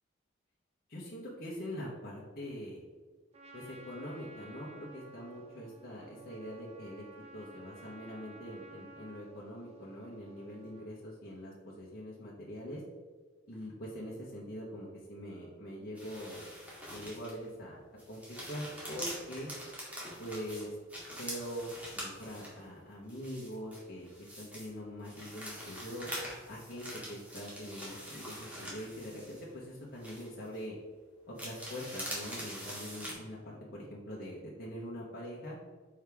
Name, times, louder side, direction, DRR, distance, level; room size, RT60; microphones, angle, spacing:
voice 1, 0.9-2.8 3.5-7.0 7.3-12.8 13.5-16.4 16.9-17.8 18.1-19.5 20.2-20.8 21.1-21.7 22.0-26.1 26.5-30.8 31.3-35.6, equal, 50° left, -5 dB, 1.1 m, -43 dB
Trumpet, 3.3-10.9, right 3 dB, 35° right, 0.7 m, -54 dB
sound 1, 16.0-17.5 17.9-22.6 23.1-24.7 25.0-29.7 30.0-30.6 31.4-33.1, equal, 10° right, 1.9 m, -44 dB
6.4 x 4.8 x 3.5 m, 1.5 s
head